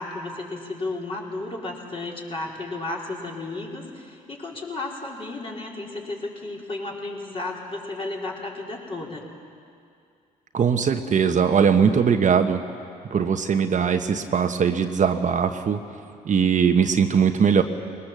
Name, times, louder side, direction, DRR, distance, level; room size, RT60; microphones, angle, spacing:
voice 1, 0.0-9.3, left 2 dB, 30° left, -2 dB, 4.6 m, -33 dB
voice 2, 10.5-12.6 13.1-15.8 16.3-17.6, right 7 dB, 45° right, 6 dB, 1.1 m, -20 dB
20.0 x 19.5 x 7.5 m, 2.4 s
supercardioid pair, 60°, 18 cm